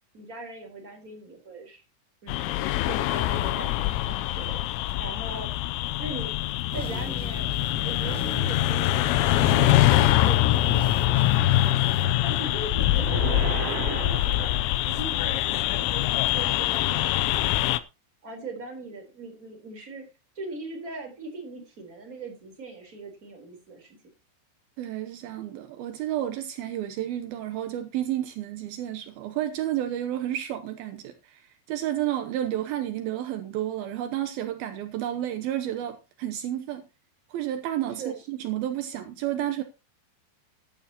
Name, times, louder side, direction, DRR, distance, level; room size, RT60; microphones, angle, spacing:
voice 1, 0.1-1.8 2.2-2.6 2.9-5.5 6.0-6.3 6.7-7.5 7.8-9.0 9.5-14.5 14.8-17.7 18.2-20.0 20.3-24.0 38.0-38.1, right 2 dB, 20° right, 3.8 m, -40 dB
sound 1, 2.3-17.8, left 15 dB, 85° left, 3.3 m, -24 dB
sound 2, 6.7-12.1, equal, 5° left, 0.7 m, -37 dB
sound 3, 12.8-15.1, right 5 dB, 50° right, 4.8 m, -34 dB
voice 2, 24.8-36.8 37.3-39.6, right 12 dB, 85° right, 2.1 m, -31 dB
15.0 x 11.5 x 3.0 m
omnidirectional pair, 5.7 m